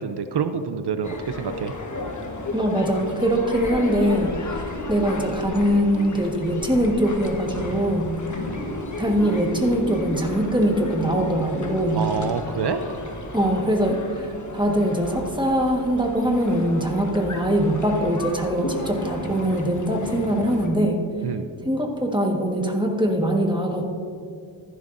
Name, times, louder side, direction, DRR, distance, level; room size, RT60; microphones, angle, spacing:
voice 1, 0.0-1.7 11.9-12.8 21.2-21.5, right 6 dB, 60° right, 10 dB, 0.6 m, -27 dB
sound 1, 1.0-20.7, left 1 dB, 40° left, 1.3 m, -33 dB
voice 2, 2.5-4.6 4.9-8.1 9.0-12.1 13.3-21.0 21.6-23.8, equal, 10° right, 1 dB, 1.4 m, -22 dB
14.5 x 11.0 x 2.6 m, 2.2 s
wide cardioid pair, 80°, 47 cm